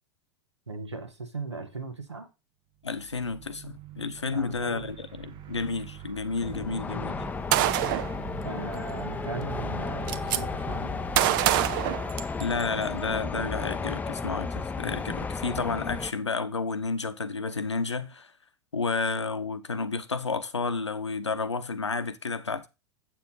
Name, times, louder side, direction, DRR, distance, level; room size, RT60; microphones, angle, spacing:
voice 1, 0.7-2.3 4.3-4.9 8.4-11.0, right 3 dB, 85° right, 1.5 m, -38 dB
voice 2, 2.8-7.2 12.4-18.3 18.7-22.7, left 4 dB, 85° left, 0.8 m, -31 dB
sound 1, 2.8-13.0, right 9 dB, 35° right, 1.0 m, -44 dB
sound 2, 6.4-16.1, left 4 dB, 10° left, 0.5 m, -34 dB
Gunshot gunfire, 7.5-8.1 9.3-9.4 9.7-10.4 11.2-12.6, right 13 dB, 50° right, 0.6 m, -25 dB
8.2 x 7.0 x 3.9 m
figure-of-eight pair, 90°, 14 cm